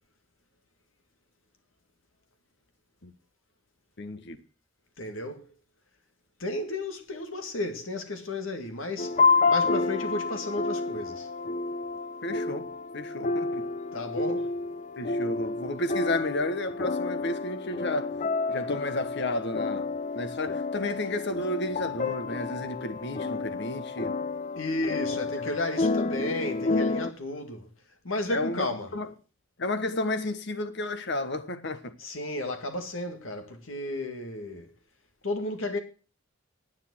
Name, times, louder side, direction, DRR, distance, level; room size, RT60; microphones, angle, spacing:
voice 1, 4.0-4.4 12.2-12.7 12.9-13.6 15.0-18.2 18.5-19.9 20.1-24.2 25.4-25.5 28.3-29.1 29.6-31.9, left 1 dB, 60° left, 1.4 m, -32 dB
voice 2, 5.0-5.5 6.4-11.3 13.9-14.5 24.6-27.7 28.0-28.9 32.0-34.8 35.2-35.8, left 2 dB, 85° left, 2.1 m, -33 dB
sound 1, 9.0-27.1, left 3 dB, 40° left, 0.6 m, -29 dB
9.9 x 9.5 x 6.2 m
head